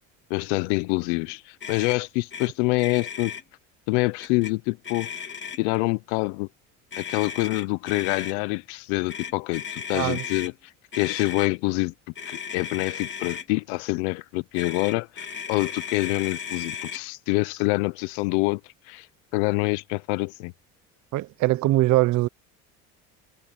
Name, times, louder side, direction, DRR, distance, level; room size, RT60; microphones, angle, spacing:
voice 1, 0.3-3.3 3.9-5.1 5.6-6.5 7.0-10.5 10.9-11.9 12.3-18.6 18.9-19.1 19.3-20.5, left 25 dB, 85° left, 0.8 m, -26 dB
Motor vehicle (road), 1.6-2.0 2.3-2.5 2.8-3.4 4.2-4.5 4.8-5.8 6.9-8.3 9.1-10.5 10.9-11.5 12.2-13.5 14.5-17.0, left 7 dB, 35° left, 3.3 m, -36 dB
voice 2, 9.9-10.2 21.1-22.3, right 17 dB, 60° right, 0.9 m, -22 dB
supercardioid pair, 90°, 33 cm